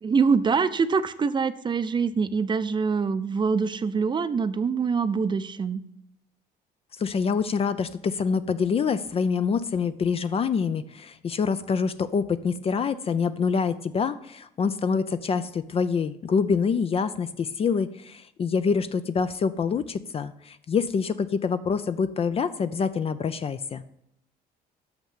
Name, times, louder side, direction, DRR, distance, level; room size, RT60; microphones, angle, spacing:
voice 1, 0.0-5.8, right 5 dB, 25° right, 13 dB, 0.6 m, -24 dB
voice 2, 7.0-23.8, left 5 dB, 35° left, 12 dB, 0.5 m, -26 dB
6.6 x 5.8 x 7.4 m, 0.76 s
cardioid pair, 110°, 17 cm